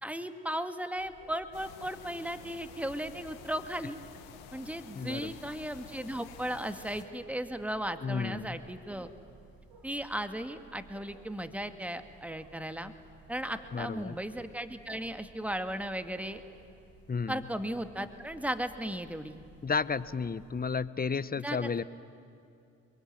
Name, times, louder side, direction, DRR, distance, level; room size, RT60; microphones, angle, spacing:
voice 1, 0.0-4.0 4.5-9.1 9.8-12.9 13.3-16.4 17.3-19.4 21.4-21.8, right 1 dB, 5° right, 8 dB, 2.0 m, -36 dB
Wild animals, 0.9-20.7, right 3 dB, 80° right, 7.5 m, -57 dB
sound 1, 1.5-7.0, left 9 dB, 90° left, 1.6 m, -51 dB
voice 2, 4.9-5.3 8.0-8.6 13.7-14.2 17.1-17.5 19.6-21.8, left 5 dB, 25° left, 17 dB, 1.0 m, -32 dB
26.5 x 22.5 x 9.5 m, 2.6 s
hypercardioid pair, 50°, 34 cm